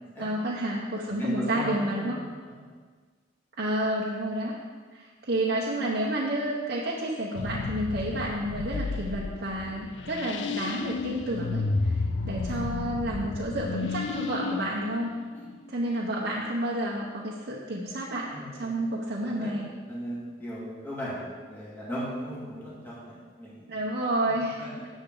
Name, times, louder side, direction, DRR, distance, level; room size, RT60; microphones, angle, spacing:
voice 1, 0.2-2.2 3.6-4.5 4.9-15.1 15.7-19.7 23.7-24.9, right 1 dB, 55° right, -4 dB, 1.0 m, -30 dB
voice 2, 1.1-1.7 2.0-2.7 18.3-18.8 19.2-24.0 24.5-24.8, equal, 10° left, -8 dB, 2.1 m, -37 dB
sound 1, 7.3-16.0, left 3 dB, 65° left, 0.4 m, -32 dB
9.9 x 7.6 x 3.9 m, 1.5 s
head